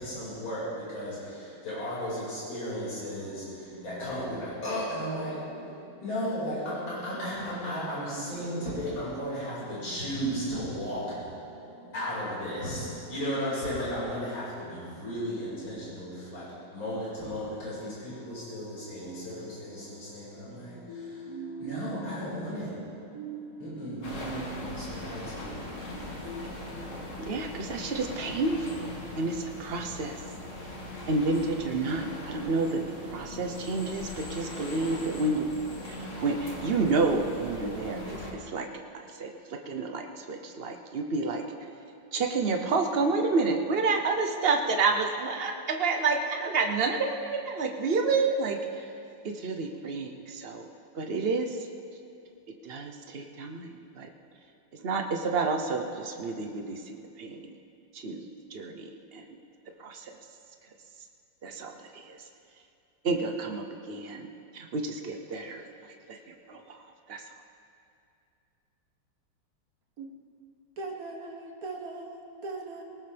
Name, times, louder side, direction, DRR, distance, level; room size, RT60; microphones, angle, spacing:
voice 1, 0.0-26.5, equal, 65° left, -9 dB, 6.0 m, -35 dB
sound 1, 24.0-38.3, left 1 dB, 35° left, 2.3 m, -40 dB
voice 2, 27.2-30.2 31.1-35.5 35.9-38.7 39.2-41.4 42.1-48.9 49.3-50.7 50.9-51.6 52.6-54.1 54.8-57.5 57.9-59.3 59.8-60.1 61.4-62.2 63.0-64.3 64.5-65.6 66.1-66.8 67.1-67.2, right 3 dB, 75° right, 4 dB, 0.5 m, -30 dB
voice 3, 70.8-72.8, right 3 dB, 45° right, 1 dB, 1.7 m, -39 dB
20.0 x 18.5 x 3.4 m, 2.6 s
omnidirectional pair, 2.4 m